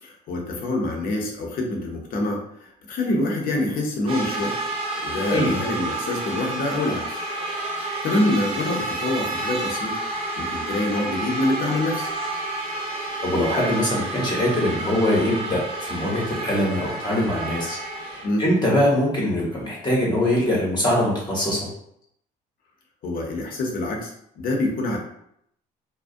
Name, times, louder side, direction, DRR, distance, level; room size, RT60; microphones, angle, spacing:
voice 1, 0.0-4.6 5.0-7.2 7.7-10.0 10.4-12.1 18.2-18.5 23.0-25.0, left 2 dB, 60° left, 0 dB, 0.7 m, -26 dB
sound 1, 4.1-18.3, right 2 dB, 35° right, 0.7 m, -30 dB
voice 2, 13.2-21.7, left 1 dB, 25° left, -5 dB, 0.8 m, -23 dB
2.4 x 2.1 x 2.6 m, 0.72 s
cardioid pair, 110°, 17 cm